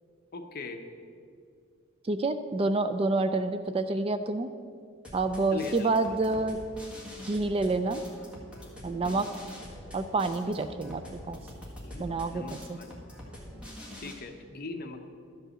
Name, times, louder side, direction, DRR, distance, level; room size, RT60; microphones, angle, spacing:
voice 1, 0.3-0.8 5.5-5.9 9.0-9.3 11.8-12.0 12.3-13.0 14.0-15.1, left 3 dB, 45° left, 5 dB, 0.8 m, -40 dB
voice 2, 2.0-4.5 5.1-6.6 7.2-8.0 8.8-9.3 9.9-11.4 12.0-12.8, right 3 dB, 25° right, 10 dB, 0.3 m, -28 dB
sound 1, 5.0-14.1, equal, 5° right, 1.7 m, -45 dB
12.0 x 5.5 x 7.4 m, 2.3 s
head